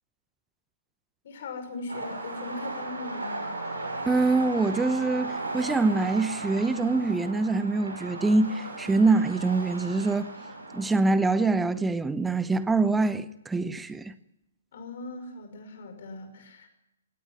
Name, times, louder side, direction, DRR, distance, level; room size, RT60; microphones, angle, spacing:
voice 1, 1.2-3.5 14.7-16.7, left 3 dB, 50° left, 5.7 m, -39 dB
sound 1, 1.9-10.9, right 2 dB, 75° right, 6.9 m, -36 dB
voice 2, 4.1-10.3 10.7-14.1, right 3 dB, 5° right, 0.8 m, -24 dB
17.5 x 17.0 x 9.5 m
figure-of-eight pair, 125°, 0 cm